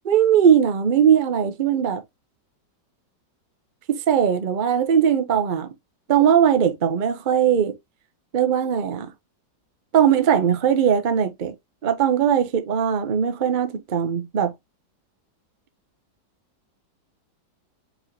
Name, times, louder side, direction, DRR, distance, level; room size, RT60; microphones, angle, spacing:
voice 1, 0.0-2.0 3.9-5.7 6.1-7.7 8.3-9.1 9.9-11.5 11.8-14.5, right 8 dB, 65° right, 0.4 m, -19 dB
4.6 x 4.0 x 2.7 m
omnidirectional pair, 1.9 m